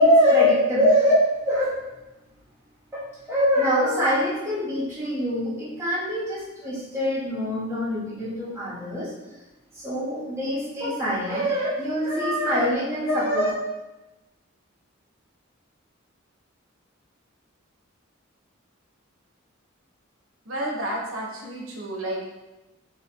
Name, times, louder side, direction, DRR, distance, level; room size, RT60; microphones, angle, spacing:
voice 1, 0.0-1.7 2.9-3.0 3.3-9.1 9.7-13.5, equal, 15° right, -7 dB, 1.1 m, -23 dB
voice 2, 20.5-22.2, right 1 dB, 80° right, -2 dB, 1.0 m, -31 dB
5.0 x 2.9 x 2.9 m, 1.0 s
head